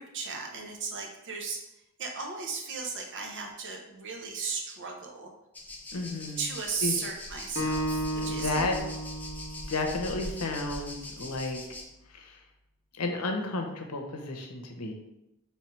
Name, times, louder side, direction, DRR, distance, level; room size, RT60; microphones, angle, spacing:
voice 1, 0.0-1.6 2.0-5.3 6.4-8.6, right 5 dB, 55° right, 2 dB, 0.7 m, -35 dB
sound 1, 5.5-11.9, left 1 dB, 10° left, 0.5 m, -42 dB
voice 2, 5.9-6.5 6.8-7.0 8.2-8.7 9.7-11.6 12.1-12.4 12.9-14.9, left 2 dB, 85° left, 3 dB, 0.7 m, -32 dB
Acoustic guitar, 7.6-10.8, right 1 dB, 55° left, 0.9 m, -34 dB
3.3 x 3.2 x 4.5 m, 0.89 s
head